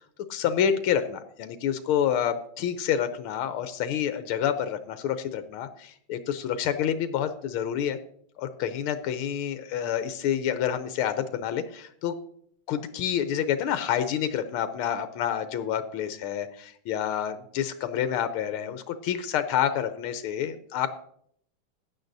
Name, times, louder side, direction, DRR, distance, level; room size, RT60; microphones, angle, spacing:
voice 1, 0.3-8.0 8.4-12.2 12.7-20.9, left 9 dB, 90° left, 10 dB, 1.6 m, -28 dB
15.5 x 10.0 x 2.6 m, 0.64 s
omnidirectional pair, 2.3 m